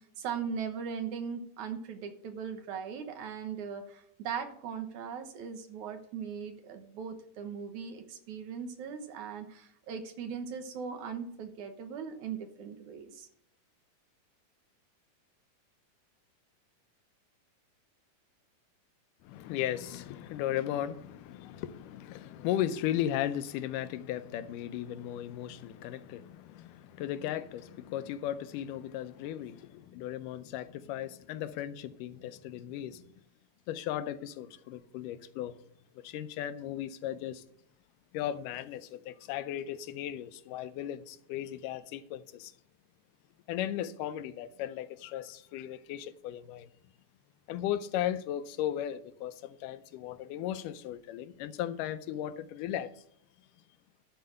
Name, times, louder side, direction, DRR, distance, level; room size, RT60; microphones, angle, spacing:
voice 1, 0.2-13.3, right 6 dB, 70° right, 2.4 m, -39 dB
voice 2, 19.2-33.1 33.7-35.6 36.0-37.4 38.1-42.5 43.5-46.7 47.5-53.0, left 11 dB, 85° left, 2.2 m, -36 dB
11.5 x 4.7 x 7.8 m
omnidirectional pair, 3.7 m